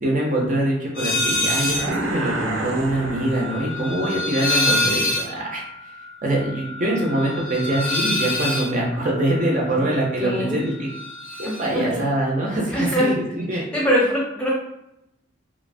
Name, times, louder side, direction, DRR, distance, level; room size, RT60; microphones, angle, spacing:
voice 1, 0.0-5.6 6.2-10.9 11.4-13.7, right 1 dB, 40° right, -2 dB, 0.5 m, -24 dB
sound 1, 0.9-1.9 2.2-10.4 10.7-11.7, left 2 dB, 50° left, 0.5 m, -27 dB
sound 2, 1.6-4.0, right 2 dB, 90° right, 0.5 m, -29 dB
voice 2, 10.2-10.6 11.4-12.0 12.7-13.1 13.7-14.5, equal, 5° left, -5 dB, 0.7 m, -23 dB
2.8 x 2.0 x 2.5 m, 0.83 s
head